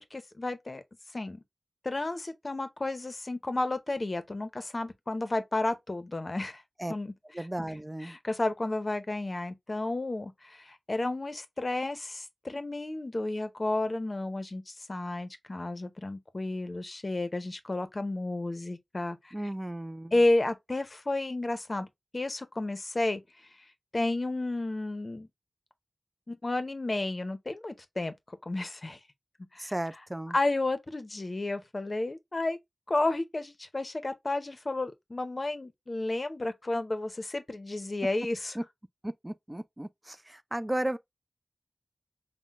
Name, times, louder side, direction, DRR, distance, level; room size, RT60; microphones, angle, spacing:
voice 1, 0.1-0.8 1.1-1.4 1.8-6.6 6.9-7.5 8.0-19.3 20.1-21.9 22.1-23.2 23.9-25.3 26.3-29.0 29.5-29.7 30.3-32.6 32.9-38.6, left 2 dB, 45° left, 0.6 m, -32 dB
voice 2, 7.3-8.1 19.3-20.1 29.6-30.4 38.6-38.7 39.0-41.0, right 1 dB, 15° right, 0.3 m, -34 dB
5.5 x 2.1 x 2.4 m
wide cardioid pair, 70°, 0 cm